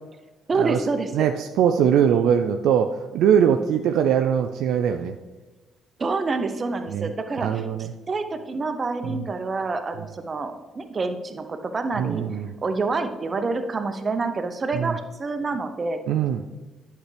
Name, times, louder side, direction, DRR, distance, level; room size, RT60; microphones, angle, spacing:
voice 1, 0.5-1.3 6.0-12.2 12.6-16.0, right 3 dB, 40° right, 7 dB, 0.9 m, -27 dB
voice 2, 1.1-5.1 6.9-7.1 7.4-7.9 9.0-9.2 12.0-12.5 14.7-14.9 16.1-16.4, right 8 dB, 70° right, 6 dB, 0.3 m, -21 dB
10.0 x 5.9 x 3.3 m, 1.2 s
hypercardioid pair, 50°, 0 cm